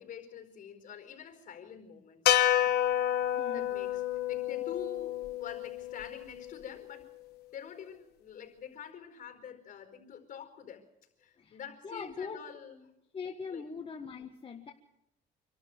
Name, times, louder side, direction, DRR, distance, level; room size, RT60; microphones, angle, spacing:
voice 1, 0.0-2.4 3.5-4.0 4.3-7.1 7.5-10.8 11.2-12.8 13.5-13.6, left 8 dB, 50° left, 6 dB, 4.7 m, -46 dB
sound 1, 2.3-6.6, left 12 dB, 75° left, 1.3 m, -29 dB
voice 2, 3.3-3.7 11.4-11.6 11.8-12.4 13.1-14.7, left 5 dB, 30° left, 3 dB, 1.6 m, -41 dB
26.5 x 12.5 x 7.9 m, 0.84 s
cardioid pair, 110°, 17 cm